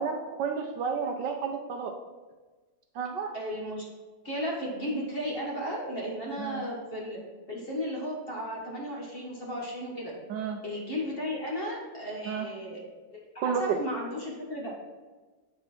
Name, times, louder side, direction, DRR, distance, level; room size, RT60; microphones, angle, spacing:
voice 1, 0.0-1.9 2.9-3.3 6.4-6.6 10.3-10.6 12.3-12.5 13.4-13.8, right 6 dB, 70° right, 3 dB, 1.1 m, -31 dB
voice 2, 3.3-3.9 4.2-7.2 7.5-10.1 10.6-12.8 13.1-14.7, equal, 30° left, -3 dB, 1.4 m, -34 dB
7.9 x 4.4 x 4.3 m, 1.3 s
omnidirectional pair, 2.2 m